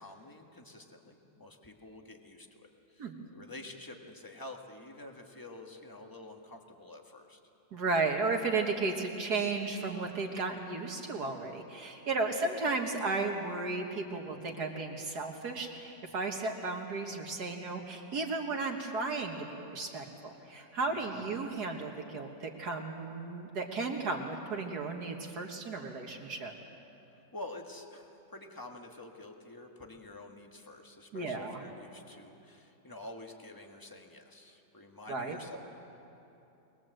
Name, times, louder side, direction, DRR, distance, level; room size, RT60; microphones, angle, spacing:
voice 1, 0.0-3.1 3.3-7.4 12.1-12.3 20.8-21.2 27.1-35.6, left 2 dB, 10° left, 3 dB, 1.5 m, -48 dB
voice 2, 7.7-26.5 31.1-31.6 35.1-35.4, right 3 dB, 60° right, 2 dB, 2.0 m, -34 dB
22.5 x 21.0 x 7.8 m, 2.9 s
omnidirectional pair, 2.0 m